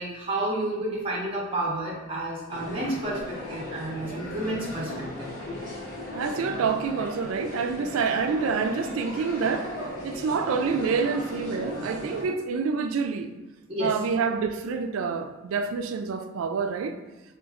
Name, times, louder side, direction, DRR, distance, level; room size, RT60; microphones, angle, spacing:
voice 1, 0.0-5.3 13.7-14.0, right 1 dB, 25° right, 0.6 m, -30 dB
sound 1, 2.5-12.2, left 1 dB, 40° left, 0.8 m, -37 dB
voice 2, 6.1-9.7 10.0-13.3 13.8-16.9, right 5 dB, 85° right, 0.3 m, -27 dB
4.0 x 2.5 x 2.4 m
head